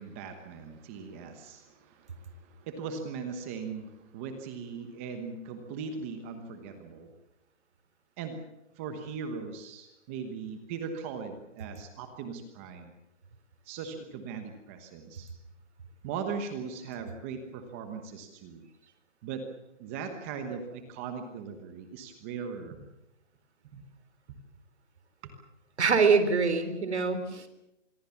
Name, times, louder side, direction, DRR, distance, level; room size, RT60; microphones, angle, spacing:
voice 1, 0.0-7.1 8.2-8.4 8.8-12.9 13.7-15.3 16.0-18.6 19.2-19.4 19.8-22.8 23.6-23.9 24.3-24.4 25.2-25.3, right 5 dB, 10° right, 7 dB, 1.1 m, -39 dB
voice 2, 25.8-27.5, right 5 dB, 65° right, 10 dB, 3.9 m, -24 dB
26.5 x 22.0 x 7.2 m, 0.90 s
hypercardioid pair, 170°, 37 cm